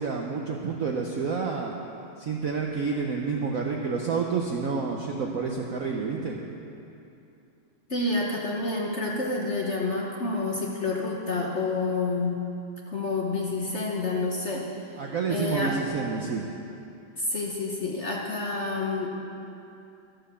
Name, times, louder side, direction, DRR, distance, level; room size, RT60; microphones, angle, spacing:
voice 1, 0.0-1.7 2.2-6.4 15.0-16.5, right 5 dB, 65° right, 0 dB, 0.8 m, -29 dB
voice 2, 7.9-12.4 12.9-14.7 15.3-15.8 17.2-19.1, left 3 dB, 45° left, -2 dB, 1.0 m, -28 dB
13.0 x 7.5 x 6.8 m, 2.7 s
omnidirectional pair, 2.3 m